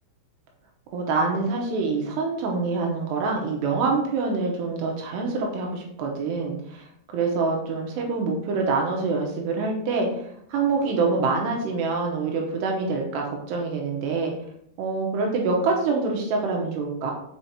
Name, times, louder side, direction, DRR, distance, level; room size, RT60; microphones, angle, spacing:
voice 1, 0.9-6.9 7.1-14.3 14.8-17.1, right 4 dB, 75° right, 1 dB, 2.7 m, -25 dB
6.7 x 5.6 x 2.9 m, 0.71 s
omnidirectional pair, 5.6 m